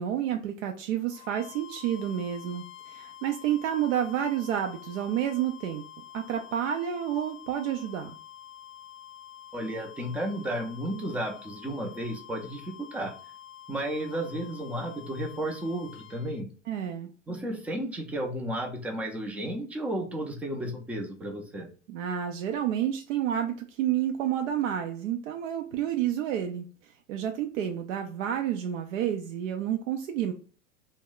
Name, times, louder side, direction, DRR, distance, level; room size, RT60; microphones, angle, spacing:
voice 1, 0.0-5.8 6.1-8.1 16.7-17.1 21.9-26.7 27.1-30.3, right 10 dB, 70° right, 4 dB, 0.5 m, -30 dB
sound 1, 1.1-16.4, left 11 dB, 75° left, 0.5 m, -48 dB
voice 2, 9.5-13.1 13.7-16.5 17.3-21.7, right 1 dB, 5° right, 2 dB, 0.3 m, -33 dB
2.2 x 2.0 x 3.7 m, 0.39 s
hypercardioid pair, 100°, 39 cm